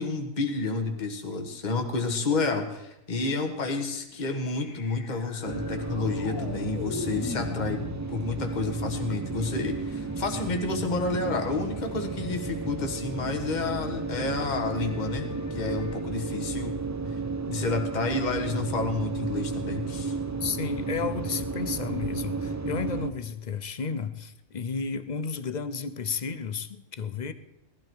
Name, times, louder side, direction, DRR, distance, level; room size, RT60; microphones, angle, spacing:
voice 1, 0.0-7.8 8.1-16.7 17.5-20.1, left 3 dB, 35° left, 5 dB, 1.4 m, -30 dB
sound 1, 4.1-16.0, left 5 dB, 75° left, 1.5 m, -43 dB
sound 2, 5.4-23.1, right 4 dB, 20° right, 0.5 m, -33 dB
voice 2, 20.4-27.3, left 5 dB, 50° left, 13 dB, 0.5 m, -32 dB
18.0 x 12.0 x 4.7 m, 0.90 s
omnidirectional pair, 1.5 m